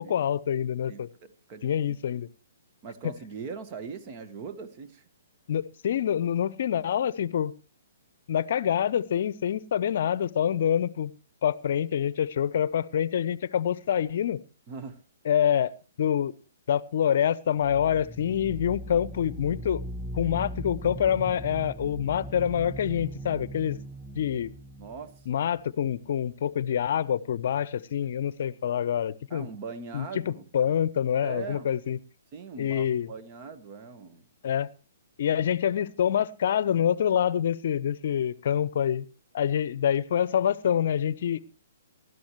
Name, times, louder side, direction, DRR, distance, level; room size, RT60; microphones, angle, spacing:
voice 1, 0.0-1.1 1.6-2.3 5.5-7.5 8.3-11.1 11.4-14.4 15.3-15.7 16.0-16.3 16.7-19.8 20.1-23.8 24.2-24.5 25.3-29.5 29.9-32.0 32.6-33.1 34.4-34.7 35.2-39.1 39.3-41.4, left 9 dB, 55° left, 20 dB, 0.7 m, -26 dB
voice 2, 0.9-2.0 2.8-5.0 14.7-15.0 24.8-25.1 29.3-30.4 31.2-31.7 32.3-34.2, right 5 dB, 35° right, 9 dB, 1.4 m, -40 dB
sound 1, 17.6-26.2, right 1 dB, 5° left, 0.7 m, -39 dB
19.0 x 12.5 x 3.1 m, 0.33 s
figure-of-eight pair, 125°, 0 cm